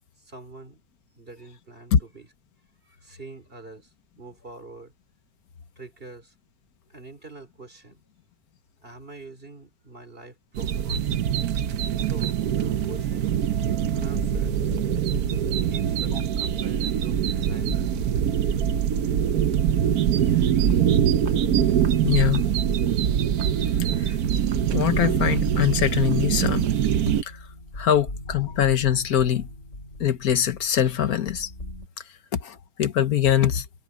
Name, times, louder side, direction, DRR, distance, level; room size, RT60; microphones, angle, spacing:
voice 1, 0.2-0.8 1.2-2.3 2.8-4.9 5.8-6.3 6.9-8.0 8.8-11.0 12.0-14.6 15.6-17.8, right 3 dB, 40° right, 3.7 m, -45 dB
sound 1, 10.5-27.2, right 9 dB, 85° right, 1.4 m, -23 dB
sound 2, 12.4-31.9, left 1 dB, 55° left, 7.2 m, -39 dB
Walk footsteps, 20.7-20.9 21.3-21.5 21.8-22.0 22.3-22.5 22.9-23.0 23.4-23.6 23.9-24.1 24.5-24.7 25.0-25.3 25.6-25.8 26.1-26.3 26.6-26.8, right 5 dB, 60° right, 1.8 m, -47 dB
voice 2, 22.0-22.6 24.0-24.2 24.7-26.7 27.2-27.4 27.8-29.5 30.0-31.5 32.3-33.7, left 10 dB, 80° left, 1.6 m, -23 dB
omnidirectional pair, 1.6 m